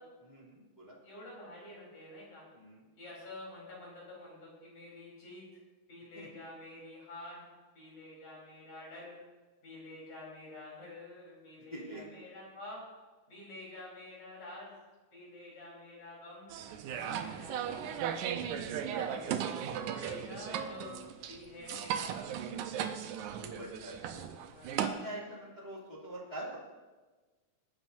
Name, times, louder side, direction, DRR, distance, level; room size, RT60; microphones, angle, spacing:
voice 1, 0.3-1.0 2.6-2.8 6.2-6.3 11.6-12.1 17.2-17.3 19.1-19.2 21.5-21.8 23.3-24.2 24.8-26.6, right 1 dB, 15° left, -6 dB, 2.5 m, -45 dB
voice 2, 1.0-2.4 3.0-5.4 5.9-7.5 7.7-9.2 9.6-12.8 13.3-14.7 15.1-16.6 16.9-19.4 20.0-21.0 21.3-22.2 23.7-24.1 24.5-24.8, left 2 dB, 65° left, -4 dB, 5.4 m, -49 dB
sound 1, 16.5-24.9, right 8 dB, 90° right, 2.2 m, -36 dB
21.0 x 10.5 x 2.7 m, 1.3 s
omnidirectional pair, 3.4 m